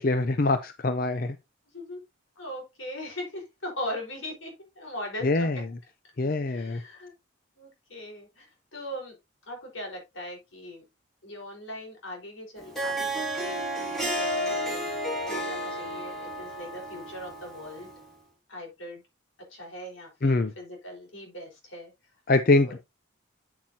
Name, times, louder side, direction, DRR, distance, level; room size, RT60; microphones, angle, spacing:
voice 1, 0.0-1.3 5.2-5.6 6.2-6.8 20.2-20.5 22.3-22.8, left 2 dB, 45° left, 0.5 m, -24 dB
voice 2, 2.4-4.5 4.8-5.6 6.5-7.1 7.6-8.5 8.7-9.2 9.5-10.8 11.2-14.9 15.2-17.9 18.5-19.0 19.5-21.9 22.7-22.8, left 1 dB, 80° left, 4.4 m, -40 dB
Harp, 12.6-18.0, equal, ahead, 2.6 m, -32 dB
8.6 x 7.8 x 2.8 m
head